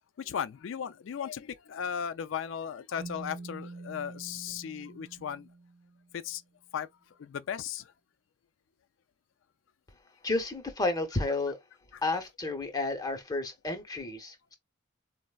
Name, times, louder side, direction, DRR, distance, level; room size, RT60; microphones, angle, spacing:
voice 1, 0.2-5.5 6.1-6.4 6.7-6.9 7.2-7.9 11.9-12.0 12.7-12.8, left 8 dB, 80° left, 0.4 m, -36 dB
Keyboard (musical), 3.0-6.2, right 3 dB, 40° right, 0.4 m, -46 dB
voice 2, 10.2-11.6 12.0-14.5, left 2 dB, 20° left, 0.7 m, -31 dB
4.0 x 2.1 x 2.3 m
head